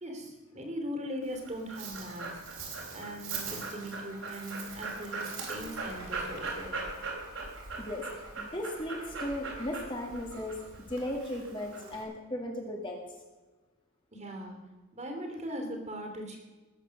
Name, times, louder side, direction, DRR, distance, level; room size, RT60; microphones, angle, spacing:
voice 1, 0.0-2.6 2.9-6.8 14.1-14.6 14.9-16.4, equal, 30° right, 4 dB, 2.9 m, -40 dB
Dog, 1.2-12.0, right 3 dB, 65° right, 4.0 m, -40 dB
voice 2, 7.8-13.0, left 1 dB, 20° left, 0 dB, 2.0 m, -36 dB
20.0 x 8.4 x 6.4 m, 1.2 s
head